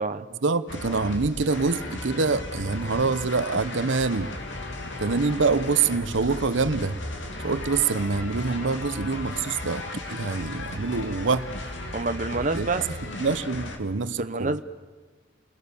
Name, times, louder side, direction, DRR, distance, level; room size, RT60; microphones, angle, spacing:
voice 1, 0.4-4.3 5.0-7.0 7.4-9.8 10.1-11.5 12.5-12.7 13.2-14.6, right 4 dB, 80° right, 0.8 m, -25 dB
sound 1, 0.7-13.8, left 1 dB, 80° left, 2.8 m, -35 dB
voice 2, 11.9-12.9 14.1-14.6, right 3 dB, 40° right, 0.8 m, -28 dB
29.5 x 21.0 x 7.0 m
head